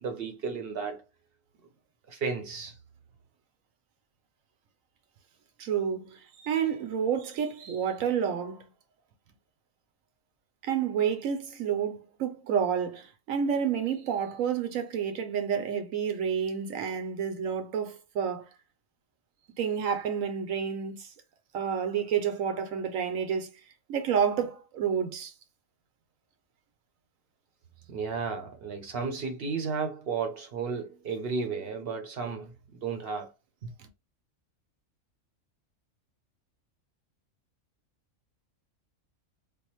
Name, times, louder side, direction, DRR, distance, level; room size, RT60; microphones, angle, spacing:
voice 1, 0.0-1.0 2.1-2.8 27.9-32.5 32.8-33.3 33.6-33.7, right 5 dB, 55° right, 0.8 m, -33 dB
voice 2, 5.6-8.7 10.6-18.4 19.6-21.1 21.5-23.5 23.9-25.3 33.8-33.9, right 7 dB, 80° right, 1.1 m, -29 dB
3.4 x 2.5 x 3.0 m
omnidirectional pair, 1.4 m